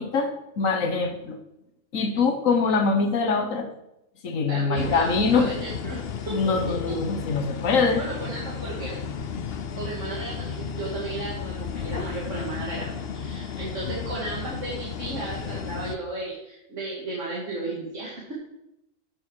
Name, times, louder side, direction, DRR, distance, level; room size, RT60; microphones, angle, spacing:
voice 1, 0.0-1.4 1.9-3.7 4.2-5.5 6.3-8.0, left 4 dB, 85° left, 6 dB, 1.6 m, -24 dB
voice 2, 4.5-6.0 6.3-6.7 7.9-9.0 9.7-12.9 13.1-18.3, right 2 dB, 65° right, -6 dB, 2.6 m, -34 dB
sound 1, 4.8-16.0, left 6 dB, 55° left, 0.9 m, -33 dB
13.5 x 6.5 x 4.9 m, 0.87 s
omnidirectional pair, 1.3 m